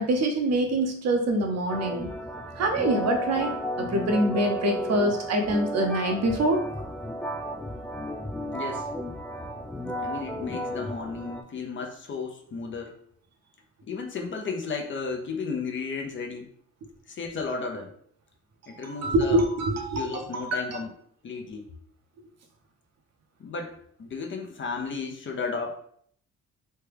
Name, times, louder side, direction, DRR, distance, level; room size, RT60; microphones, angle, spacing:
voice 1, 0.0-2.1 2.6-6.6 18.7-20.8, right 1 dB, 60° right, 3 dB, 0.7 m, -25 dB
sound 1, 1.7-11.4, equal, 5° left, 0.3 m, -33 dB
voice 2, 8.5-8.9 10.0-12.9 13.8-16.5 17.1-17.9 18.7-19.4 20.0-20.9 21.2-21.7 23.4-25.7, left 4 dB, 40° left, 2 dB, 0.6 m, -34 dB
3.2 x 2.2 x 3.3 m, 0.65 s
cardioid pair, 90°, 30 cm